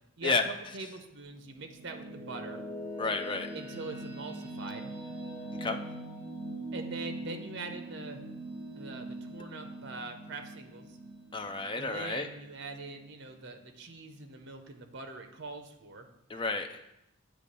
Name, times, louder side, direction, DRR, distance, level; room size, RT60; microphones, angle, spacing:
voice 1, 0.2-2.6 3.5-4.9 6.7-8.2 8.8-11.0 11.7-16.1, right 3 dB, 55° right, 6 dB, 0.7 m, -43 dB
sound 1, 1.3-12.6, right 1 dB, 15° right, 2.1 m, -42 dB
voice 2, 3.0-3.5 5.6-5.8 11.3-12.3 16.3-16.7, left 4 dB, 25° left, 7 dB, 0.4 m, -31 dB
8.2 x 3.1 x 5.3 m, 0.86 s
head